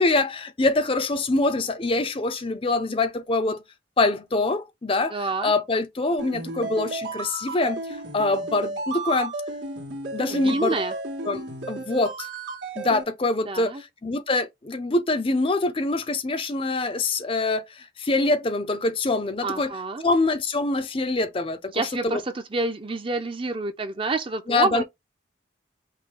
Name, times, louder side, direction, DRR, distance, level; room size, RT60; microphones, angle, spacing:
voice 1, 0.0-3.6 4.0-9.3 10.1-10.8 11.2-12.3 12.8-19.7 20.0-22.2 24.5-24.8, left 2 dB, 30° left, 0.6 m, -25 dB
voice 2, 5.1-5.5 10.3-10.9 13.5-13.8 19.4-20.0 21.7-24.8, right 3 dB, 30° right, 0.7 m, -28 dB
sound 1, 6.2-13.0, right 2 dB, 80° right, 1.9 m, -33 dB
5.5 x 2.2 x 3.8 m
head